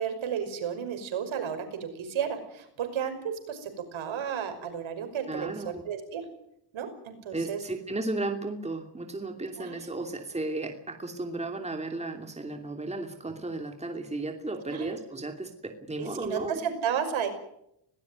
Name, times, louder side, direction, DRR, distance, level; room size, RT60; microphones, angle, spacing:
voice 1, 0.0-6.2 6.7-7.6 9.6-9.8 14.7-14.9 16.0-17.3, right 8 dB, 65° right, 7 dB, 5.7 m, -33 dB
voice 2, 5.3-5.8 7.3-16.6, right 2 dB, 15° right, 4 dB, 2.9 m, -34 dB
21.5 x 18.5 x 9.3 m, 0.76 s
cardioid pair, 100°, 50 cm